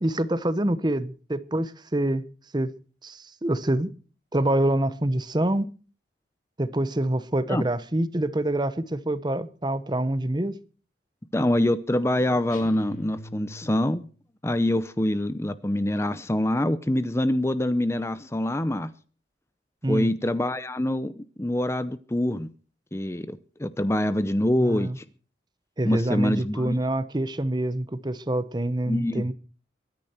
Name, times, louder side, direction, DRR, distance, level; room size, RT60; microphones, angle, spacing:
voice 1, 0.0-2.2 2.5-2.7 3.0-3.9 4.3-5.7 6.6-10.6 19.8-20.1 24.6-25.0 25.8-29.3, right 1 dB, 25° right, 0.9 m, -26 dB
voice 2, 11.3-14.1 14.4-18.9 19.9-22.5 22.9-25.0 25.8-26.8 28.9-29.2, left 1 dB, 15° left, 0.6 m, -25 dB
sound 1, 12.5-14.2, left 1 dB, 45° left, 2.6 m, -42 dB
22.5 x 10.0 x 4.5 m
head